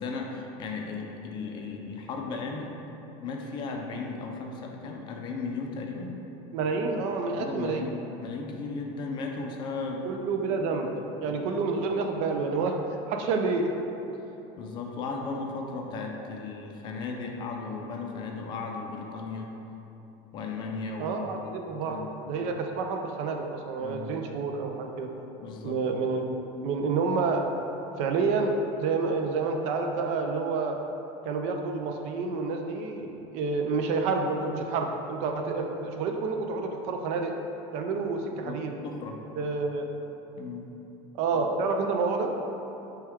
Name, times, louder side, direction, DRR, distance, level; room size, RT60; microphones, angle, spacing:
voice 1, 0.0-2.7 3.2-6.2 7.4-10.1 11.3-11.4 14.6-19.5 20.3-21.4 21.8-22.1 23.8-24.1 25.4-25.8 38.4-39.2 40.4-40.7, left 4 dB, 35° left, 2 dB, 0.4 m, -36 dB
voice 2, 6.5-7.8 10.0-10.9 11.2-13.7 21.0-22.0 22.3-25.1 25.6-27.4 28.0-30.8 31.2-37.3 37.7-38.7 39.4-39.9 41.1-42.3, right 4 dB, 55° right, 3 dB, 0.4 m, -29 dB
5.7 x 2.3 x 3.5 m, 3.0 s
cardioid pair, 155°, 14 cm